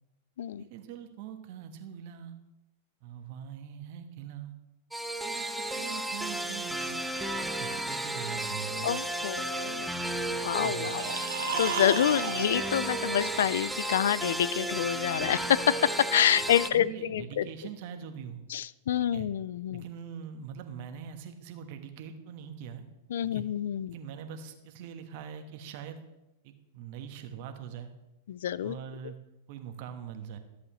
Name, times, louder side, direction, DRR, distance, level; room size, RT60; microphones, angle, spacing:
voice 1, 0.6-2.3 3.0-4.5 5.2-6.9 7.3-8.9 10.6-10.9 16.4-18.4 19.0-19.3 19.7-22.8 23.3-23.4 23.9-26.0 26.4-27.9 28.6-29.2 29.5-30.4, right 8 dB, 55° right, 7 dB, 1.2 m, -43 dB
sound 1, 4.9-16.7, right 1 dB, 5° right, 0.7 m, -33 dB
voice 2, 8.8-10.0 10.3-11.0 11.6-17.5 18.5-19.8 23.1-23.9 28.3-28.8, left 10 dB, 75° left, 19 dB, 0.3 m, -27 dB
sound 2, 10.7-13.9, right 6 dB, 85° right, 0.9 m, -36 dB
13.5 x 8.1 x 3.1 m, 0.95 s
hypercardioid pair, 105°, 0 cm